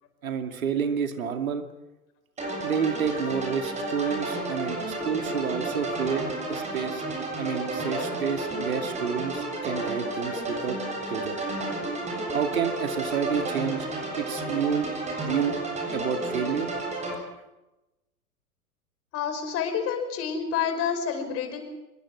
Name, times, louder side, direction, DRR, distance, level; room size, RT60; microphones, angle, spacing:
voice 1, 0.2-1.6 2.6-7.0 7.4-10.8 11.1-11.4 12.3-13.9 14.2-14.9 15.2-15.6 15.9-16.7, right 7 dB, 65° right, 6 dB, 2.5 m, -29 dB
sound 1, 2.4-17.1, right 2 dB, 15° right, 7.4 m, -32 dB
voice 2, 19.1-21.6, left 7 dB, 30° left, 7 dB, 5.2 m, -28 dB
26.0 x 22.5 x 6.2 m, 1.0 s
figure-of-eight pair, 100°, 45 cm